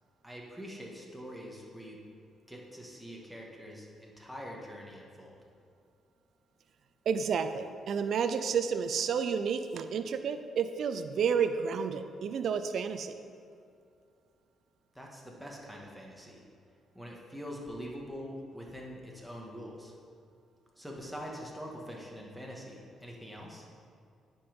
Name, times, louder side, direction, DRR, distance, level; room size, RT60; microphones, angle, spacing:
voice 1, 0.2-2.0 2.5-5.4 14.9-16.4 16.9-19.9 20.8-23.7, equal, ahead, -2 dB, 1.8 m, -44 dB
voice 2, 7.1-13.2, right 6 dB, 65° right, 9 dB, 0.5 m, -31 dB
9.7 x 5.4 x 5.3 m, 2.4 s
cardioid pair, 90°, 0 cm